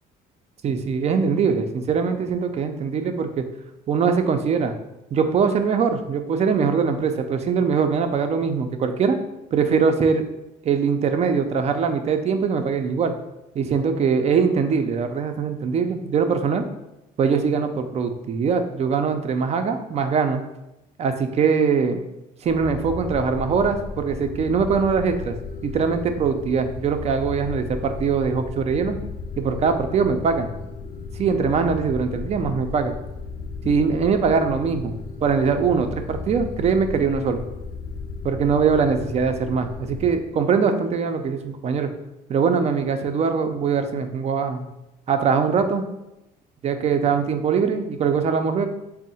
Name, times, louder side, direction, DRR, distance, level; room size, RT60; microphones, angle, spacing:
voice 1, 0.6-3.4 3.9-4.7 5.1-9.2 9.5-10.3 10.6-13.1 13.6-16.6 17.2-20.4 21.0-22.0 22.4-25.4 25.6-28.9 29.4-30.5 31.1-32.9 33.6-34.9 35.2-37.4 38.2-41.9 42.3-44.6 45.1-45.9 46.6-48.7, right 5 dB, 40° right, 7 dB, 0.4 m, -22 dB
sound 1, 22.4-40.2, left 4 dB, 55° left, 0.5 m, -35 dB
3.6 x 2.1 x 4.1 m, 0.91 s
cardioid pair, 110°, 17 cm